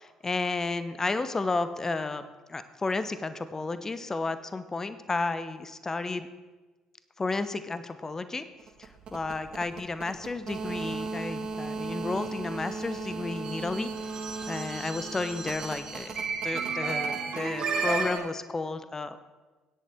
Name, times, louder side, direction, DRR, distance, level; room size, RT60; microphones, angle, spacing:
voice 1, 0.0-2.2 2.5-6.3 7.2-8.4 8.8-13.9 14.5-19.2, left 3 dB, 25° left, 12 dB, 0.8 m, -32 dB
sound 1, 8.6-18.2, right 4 dB, 45° right, 1.7 m, -33 dB
17.5 x 10.0 x 3.6 m, 1.3 s
figure-of-eight pair, 50°, 2 cm